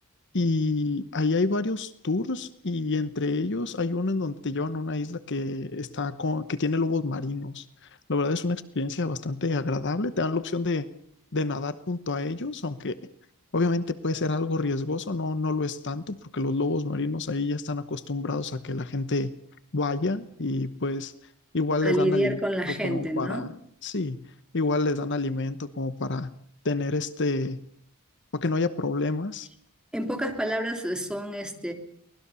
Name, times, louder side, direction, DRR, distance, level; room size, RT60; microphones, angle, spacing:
voice 1, 0.3-7.7 8.1-10.9 11.3-13.0 13.5-19.4 19.7-21.1 21.5-22.4 22.8-23.5 23.8-24.3 24.5-26.3 26.6-27.7 28.3-29.5, left 3 dB, 55° left, 13 dB, 1.0 m, -28 dB
voice 2, 21.8-23.5 29.9-31.7, equal, 5° right, 4 dB, 3.1 m, -28 dB
24.0 x 20.0 x 7.0 m, 0.65 s
head